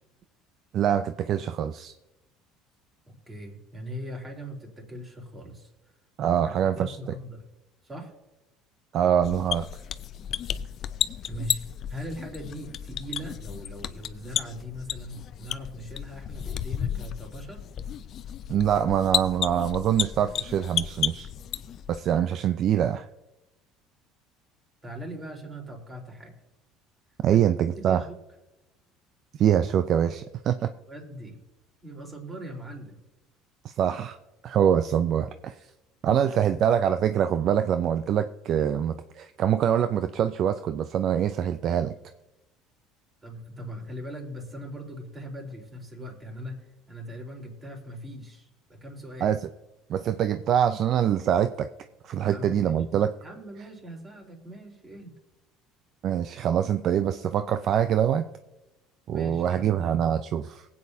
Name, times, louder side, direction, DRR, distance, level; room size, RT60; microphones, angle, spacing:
voice 1, 0.7-1.9 6.2-7.0 8.9-9.7 18.5-21.3 21.9-23.0 27.2-28.0 29.4-30.7 33.6-34.2 34.4-35.6 36.0-41.9 49.2-49.5 49.9-51.7 52.0-53.1 56.0-58.3 59.1-60.7, right 9 dB, 55° right, 10 dB, 0.5 m, -24 dB
voice 2, 3.1-5.7 6.3-7.4 7.8-8.1 11.3-11.6 11.9-17.6 24.8-26.4 27.3-27.4 27.8-28.1 30.9-31.4 31.8-33.0 36.1-36.2 36.4-36.5 43.2-49.3 52.2-52.8 53.2-55.1 59.1-59.9, equal, 25° right, 1 dB, 3.8 m, -40 dB
sound 1, 9.2-22.0, left 9 dB, 50° left, 0.5 m, -33 dB
19.5 x 8.6 x 2.7 m, 0.98 s
supercardioid pair, 90°, 0 cm